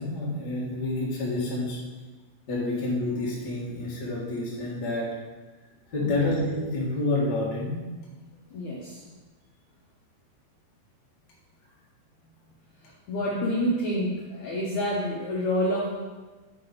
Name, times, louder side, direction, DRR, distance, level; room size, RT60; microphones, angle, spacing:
voice 1, 0.0-1.8 2.5-5.1 5.9-7.8, left 2 dB, 60° left, -6 dB, 1.0 m, -28 dB
voice 2, 8.5-9.0 13.1-16.0, equal, 80° left, -4 dB, 1.6 m, -28 dB
8.8 x 5.9 x 4.0 m, 1.3 s
omnidirectional pair, 4.9 m